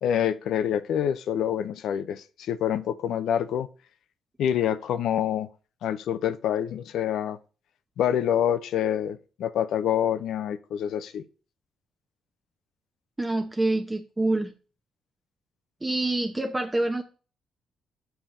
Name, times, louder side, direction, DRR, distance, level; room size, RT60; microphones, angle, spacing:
voice 1, 0.0-3.7 4.4-5.5 5.8-7.4 8.0-11.2, left 9 dB, 75° left, 0.6 m, -26 dB
voice 2, 13.2-14.5 15.8-17.0, right 2 dB, 15° right, 0.8 m, -26 dB
7.1 x 5.7 x 3.7 m
cardioid pair, 90°, 0 cm